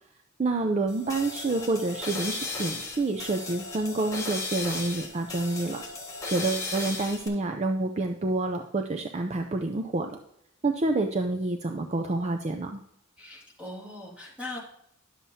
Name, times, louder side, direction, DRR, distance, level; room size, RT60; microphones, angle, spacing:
voice 1, 0.4-5.8 6.3-10.1 10.6-12.8, right 2 dB, 35° right, 5 dB, 0.5 m, -28 dB
sound 1, 0.9-7.3, left 3 dB, 15° left, 1.6 m, -36 dB
voice 2, 13.2-14.6, left 2 dB, 5° right, -5 dB, 2.4 m, -40 dB
11.0 x 7.3 x 2.8 m, 0.75 s
head